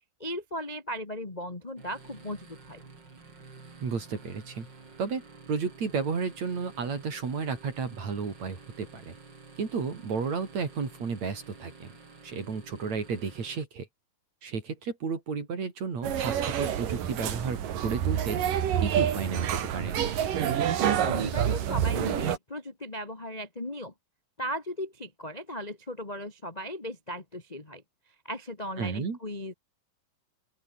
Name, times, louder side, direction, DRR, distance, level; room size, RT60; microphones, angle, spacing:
voice 1, 0.2-2.9 21.0-23.9 24.4-27.8 28.2-29.5, equal, 20° left, 1.0 m, -37 dB
sound 1, 1.8-13.6, right 4 dB, 30° right, 4.0 m, -51 dB
voice 2, 3.8-4.7 5.0-5.2 5.5-9.1 9.6-11.9 12.2-13.9 14.4-18.4 18.8-20.0 28.8-29.2, right 5 dB, 50° right, 4.9 m, -32 dB
sound 2, 16.0-22.4, right 9 dB, 65° right, 3.7 m, -28 dB
open air
omnidirectional pair, 4.2 m